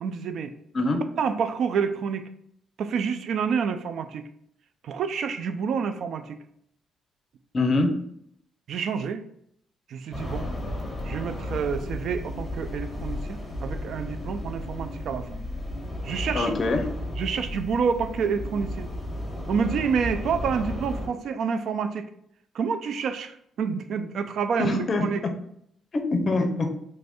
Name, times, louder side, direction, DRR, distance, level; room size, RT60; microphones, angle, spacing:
voice 1, 0.0-0.5 1.2-2.2 2.8-4.2 4.8-6.4 8.7-9.2 9.9-10.5 11.1-15.3 16.0-16.5 17.2-18.9 19.5-22.1 22.5-25.2, right 6 dB, 70° right, 10 dB, 0.3 m, -28 dB
voice 2, 7.5-8.0 16.3-16.9 24.6-25.1 25.9-26.7, left 2 dB, 45° left, 6 dB, 0.5 m, -24 dB
sound 1, 10.1-21.1, left 1 dB, 10° left, 1.1 m, -34 dB
3.2 x 2.5 x 3.5 m, 0.72 s
cardioid pair, 90°, 0 cm